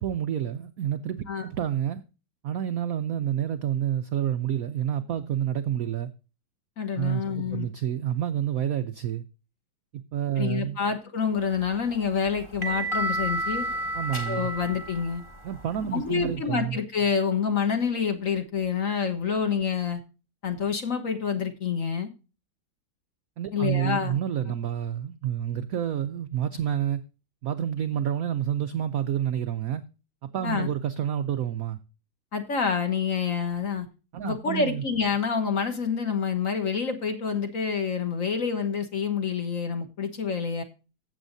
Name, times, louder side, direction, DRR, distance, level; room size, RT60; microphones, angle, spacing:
voice 1, 0.0-2.0 2.4-6.1 7.0-9.2 9.9-10.8 13.9-14.5 15.4-16.8 23.4-27.0 27.4-29.8 30.3-31.8 34.1-34.8, right 10 dB, 75° right, 0.8 m, -29 dB
voice 2, 6.8-7.7 10.4-13.7 14.3-15.2 15.9-20.0 20.4-22.1 23.5-24.2 30.4-30.7 32.3-33.9 34.2-40.6, left 6 dB, 45° left, 1.5 m, -27 dB
sound 1, 11.5-16.3, right 1 dB, 15° left, 1.5 m, -32 dB
15.0 x 7.1 x 2.7 m
omnidirectional pair, 2.2 m